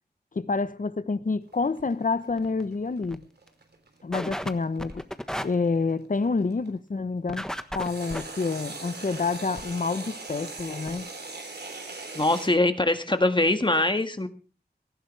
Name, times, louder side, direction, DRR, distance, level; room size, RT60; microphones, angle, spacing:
voice 1, 0.3-3.2 4.0-5.1 5.4-7.5 7.7-11.1, left 4 dB, 55° left, 1.0 m, -28 dB
sound 1, 1.5-6.7 7.8-12.5, right 3 dB, 80° right, 3.5 m, -40 dB
sound 2, 1.8-1.9 2.3-2.6 3.0-3.2 3.5-3.6 4.1-4.5 4.8-5.4 7.3-8.2 9.6-9.7 10.3-10.4 10.6-10.7 10.9-11.0, equal, 5° left, 1.3 m, -33 dB
voice 2, 12.1-14.3, left 2 dB, 30° left, 1.7 m, -23 dB
18.0 x 15.0 x 3.4 m
wide cardioid pair, 65°, 17 cm